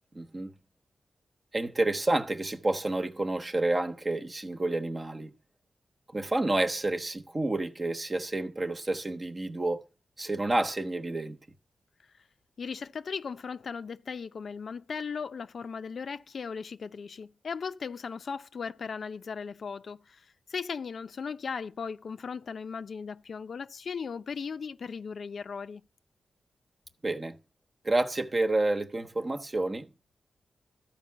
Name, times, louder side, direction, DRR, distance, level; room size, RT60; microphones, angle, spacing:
voice 1, 0.1-0.5 1.5-5.3 6.1-9.8 10.2-11.4 27.0-27.4 27.8-29.9, right 2 dB, 35° right, 1.1 m, -29 dB
voice 2, 12.6-25.8, left 5 dB, 70° left, 0.6 m, -37 dB
13.5 x 4.7 x 8.5 m
cardioid pair, 70°, 0 cm